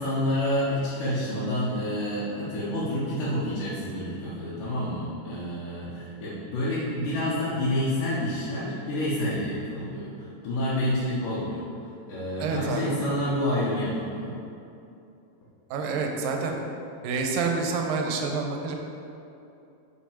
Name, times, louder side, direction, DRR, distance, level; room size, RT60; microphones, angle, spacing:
voice 1, 0.0-11.7 12.1-14.3, left 1 dB, 70° left, -10 dB, 2.7 m, -28 dB
voice 2, 12.4-13.0 15.7-16.6 17.0-18.8, right 4 dB, 85° right, 2 dB, 2.4 m, -28 dB
5.9 x 5.6 x 5.0 m, 2.7 s
omnidirectional pair, 3.9 m